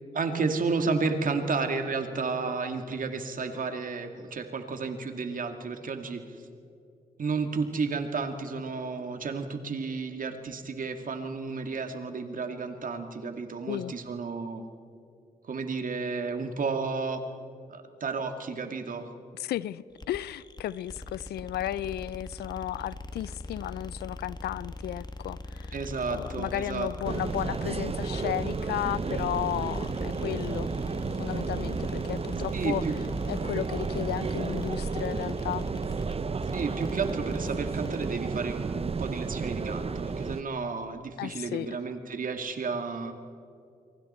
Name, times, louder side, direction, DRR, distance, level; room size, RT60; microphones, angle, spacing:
voice 1, 0.1-6.2 7.2-14.7 15.5-17.2 17.7-19.1 25.7-27.2 32.5-32.9 36.5-43.1, right 4 dB, 55° right, 2.2 m, -32 dB
voice 2, 19.3-25.7 26.1-30.7 31.0-32.8 33.3-35.7 41.2-41.7, left 12 dB, 80° left, 0.5 m, -34 dB
sound 1, 20.0-38.2, left 2 dB, 25° left, 1.8 m, -41 dB
sound 2, 27.0-40.4, right 4 dB, 35° right, 0.9 m, -32 dB
28.0 x 23.5 x 4.4 m
supercardioid pair, 55°, 16 cm